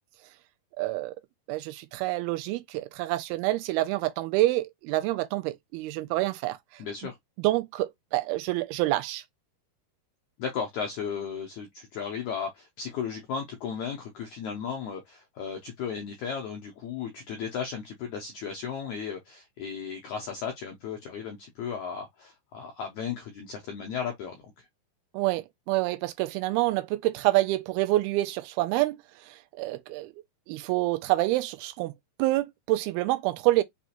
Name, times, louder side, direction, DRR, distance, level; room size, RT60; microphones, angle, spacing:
voice 1, 0.8-1.2 1.5-6.6 7.4-9.2 25.1-29.0 29.6-30.1 30.5-31.9 32.2-33.6, right 17 dB, 85° right, 2.4 m, -27 dB
voice 2, 6.8-7.2 10.4-24.7, left 6 dB, 80° left, 1.7 m, -35 dB
6.0 x 2.4 x 2.8 m
omnidirectional pair, 4.4 m